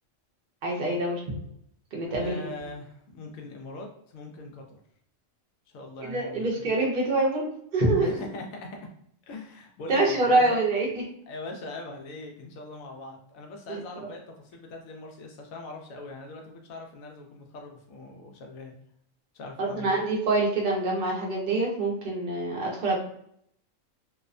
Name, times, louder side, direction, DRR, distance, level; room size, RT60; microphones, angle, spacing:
voice 1, 0.6-1.4 1.9-2.5 6.0-8.2 9.9-10.9 13.7-14.1 19.6-23.0, right 2 dB, 50° right, -2 dB, 0.6 m, -26 dB
voice 2, 2.1-4.8 5.7-6.7 8.0-8.9 9.3-10.6 11.3-18.7 19.3-20.1, left 2 dB, 80° left, 2 dB, 1.0 m, -41 dB
2.7 x 2.1 x 2.4 m, 0.68 s
omnidirectional pair, 1.4 m